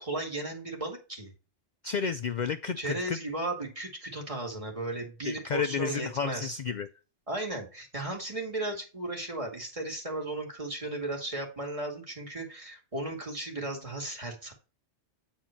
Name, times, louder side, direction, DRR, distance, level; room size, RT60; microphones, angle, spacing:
voice 1, 0.0-1.3 2.8-6.6 7.3-14.5, right 2 dB, 25° right, 1 dB, 2.1 m, -35 dB
voice 2, 1.8-3.2 5.3-6.9, left 6 dB, 60° left, 10 dB, 0.4 m, -31 dB
9.1 x 4.3 x 4.5 m, 0.32 s
omnidirectional pair, 1.3 m